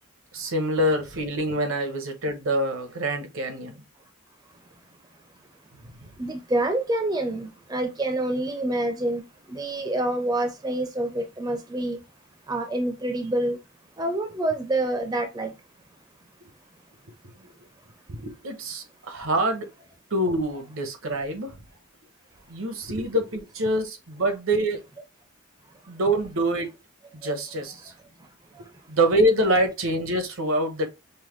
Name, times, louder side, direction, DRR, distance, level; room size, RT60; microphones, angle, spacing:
voice 1, 0.3-3.8 18.1-19.7 20.1-21.5 22.5-24.8 25.9-26.7 27.1-27.8 28.9-30.9, right 1 dB, 80° right, 1.0 m, -25 dB
voice 2, 6.2-12.0 12.5-13.6 14.0-15.5 25.6-25.7 27.2-27.3 27.7-28.8, right 1 dB, 20° right, 0.4 m, -28 dB
5.5 x 2.2 x 3.1 m
head